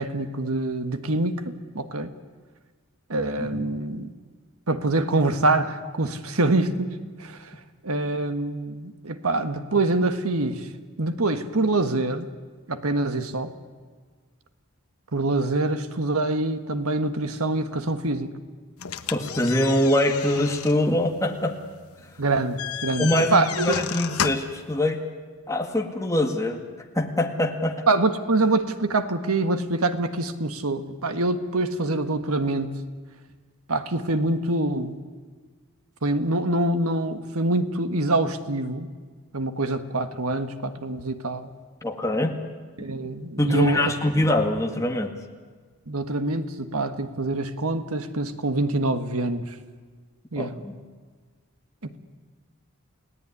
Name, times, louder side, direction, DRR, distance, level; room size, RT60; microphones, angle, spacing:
voice 1, 0.0-2.1 3.1-4.1 4.7-7.5 7.8-10.7 11.0-12.3 12.7-13.5 15.1-18.4 22.2-23.7 27.9-32.8 33.7-35.0 36.0-38.9 39.3-41.5 42.8-43.9 45.9-49.6 50.3-50.5 51.8-52.0, right 2 dB, 75° right, 9 dB, 1.5 m, -25 dB
sound 1, 18.8-24.6, left 8 dB, 80° left, 1.1 m, -33 dB
voice 2, 19.1-21.5 23.0-25.0 25.5-26.6 26.9-27.8 41.8-42.3 43.4-45.1 50.4-50.8, left 1 dB, 15° left, 3 dB, 1.9 m, -23 dB
29.5 x 17.5 x 9.9 m, 1.5 s
head